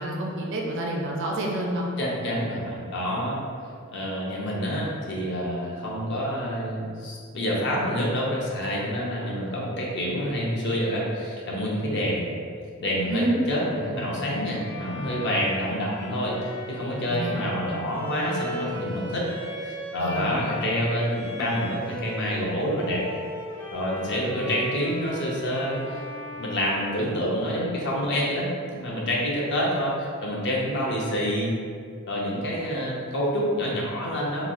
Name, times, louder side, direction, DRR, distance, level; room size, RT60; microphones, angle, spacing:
voice 1, 0.0-1.9 13.1-13.4 17.1-17.5 20.0-20.3, right 1 dB, 60° right, -2 dB, 0.5 m, -28 dB
voice 2, 2.0-3.4 3.9-12.3 12.8-13.2 13.5-16.4 16.7-19.3 19.6-23.0 23.7-26.0 26.4-31.5 32.1-34.5, equal, 55° left, -4 dB, 0.6 m, -27 dB
Bowed string instrument, 14.6-22.4 22.7-27.5, equal, 10° left, 0.3 m, -38 dB
3.1 x 2.3 x 2.5 m, 2.2 s
head